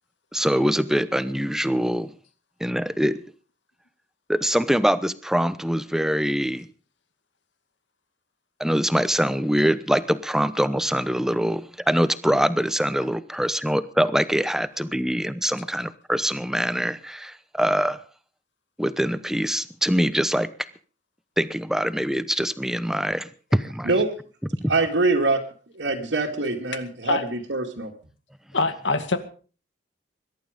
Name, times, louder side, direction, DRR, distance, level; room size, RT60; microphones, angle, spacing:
voice 1, 0.3-2.1 2.6-3.2 4.3-6.7 8.6-18.0 18.8-20.5 21.4-23.9 24.6-24.7, equal, 5° right, 14 dB, 0.8 m, -24 dB
voice 2, 24.7-25.4 25.7-27.9, right 3 dB, 80° right, -2 dB, 2.4 m, -24 dB
voice 3, 28.5-29.2, left 3 dB, 80° left, 9 dB, 2.2 m, -23 dB
22.0 x 11.5 x 5.2 m, 0.41 s
head